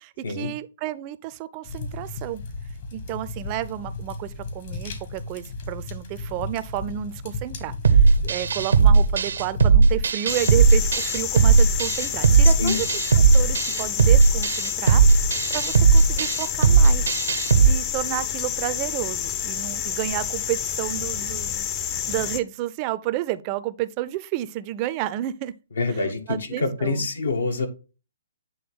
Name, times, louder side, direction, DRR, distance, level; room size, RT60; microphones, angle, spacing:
voice 1, 0.0-2.4 2.9-12.9 13.1-17.2 17.7-21.7 22.1-25.5 25.9-26.0 26.3-27.1, right 14 dB, 35° right, 0.5 m, -31 dB
sound 1, 1.6-9.6, left 2 dB, 55° left, 1.9 m, -36 dB
sound 2, 7.8-17.7, right 5 dB, 75° right, 0.7 m, -17 dB
sound 3, 10.3-22.4, left 9 dB, 30° left, 0.7 m, -29 dB
voice 2, 12.4-12.8 25.8-27.7, left 3 dB, 75° left, 1.5 m, -26 dB
8.6 x 3.3 x 3.6 m
hypercardioid pair, 135°, 0 cm